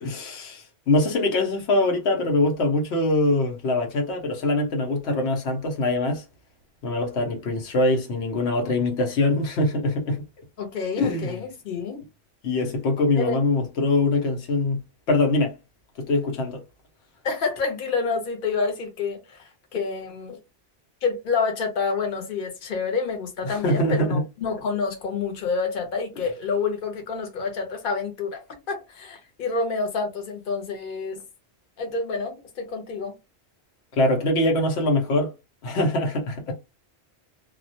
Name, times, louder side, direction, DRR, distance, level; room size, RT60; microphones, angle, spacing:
voice 1, 0.0-6.2 6.8-10.2 11.0-11.4 12.4-14.8 15.1-15.5 16.0-16.6 23.4-24.2 33.9-35.3 35.6-36.5, left 2 dB, 85° left, 1.0 m, -23 dB
voice 2, 10.6-12.0 13.2-13.4 17.2-20.4 21.0-28.4 28.7-31.2 31.8-33.2, left 4 dB, 55° left, 0.9 m, -28 dB
2.3 x 2.1 x 2.6 m
omnidirectional pair, 1.1 m